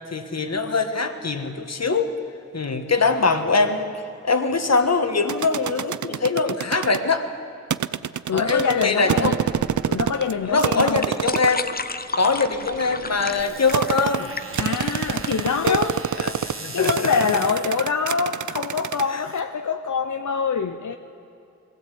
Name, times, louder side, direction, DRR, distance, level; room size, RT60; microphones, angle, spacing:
voice 1, 0.1-2.1 2.5-3.9 4.2-7.3 8.3-9.4 10.4-11.8 12.2-14.3 14.6-14.7 15.6-15.8 16.2-16.3 16.6-16.9 19.1-19.2, left 4 dB, 60° left, 7 dB, 1.6 m, -22 dB
sound 1, 5.3-7.0 7.7-10.3 10.6-11.6 12.3-19.0, right 9 dB, 85° right, 0.5 m, -26 dB
voice 2, 8.3-9.3 9.9-11.1 14.6-16.0 16.3-21.0, left 6 dB, 85° left, 6 dB, 0.7 m, -25 dB
sound 2, 9.5-16.5, left 4 dB, 30° left, 0.7 m, -34 dB
sound 3, 13.4-19.4, right 3 dB, 45° right, 2.3 m, -40 dB
22.0 x 16.0 x 8.5 m, 2.6 s
wide cardioid pair, 70°, 29 cm